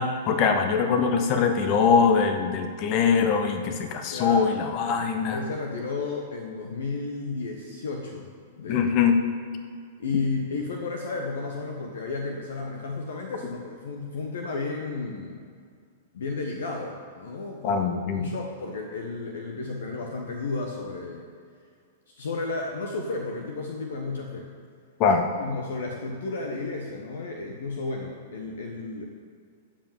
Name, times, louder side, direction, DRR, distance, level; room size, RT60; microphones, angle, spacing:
voice 1, 0.0-5.4 8.7-9.2 17.6-18.3 25.0-25.3, left 6 dB, 40° left, 6 dB, 1.2 m, -22 dB
voice 2, 4.1-4.5 5.3-8.3 8.6-8.8 10.0-15.4 16.1-21.3 22.1-24.5 25.4-29.1, left 3 dB, 65° left, 2 dB, 1.2 m, -33 dB
14.5 x 5.2 x 7.2 m, 2.1 s
figure-of-eight pair, 105°, 0 cm